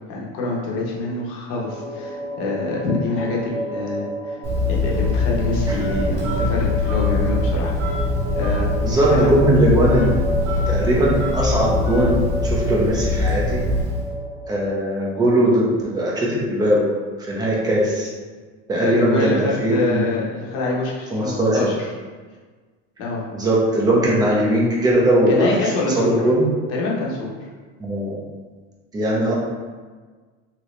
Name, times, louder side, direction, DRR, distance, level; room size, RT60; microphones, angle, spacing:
voice 1, 0.1-4.4 4.7-7.7 8.4-8.7 9.1-9.3 18.8-21.9 23.0-23.2 25.3-26.2 26.7-27.5, left 2 dB, 55° left, -3 dB, 0.9 m, -26 dB
sound 1, 1.6-14.5, right 1 dB, 85° right, 0.7 m, -31 dB
Telephone, 4.4-14.1, left 2 dB, 50° right, 1.0 m, -22 dB
voice 2, 8.8-10.2 10.7-13.6 14.5-16.9 17.2-18.1 18.7-20.1 21.1-21.7 23.3-25.5 25.8-26.4 27.8-28.2 28.9-29.4, right 1 dB, 15° right, -4 dB, 0.6 m, -19 dB
2.9 x 2.8 x 3.1 m, 1.4 s
cardioid pair, 150°, 30 cm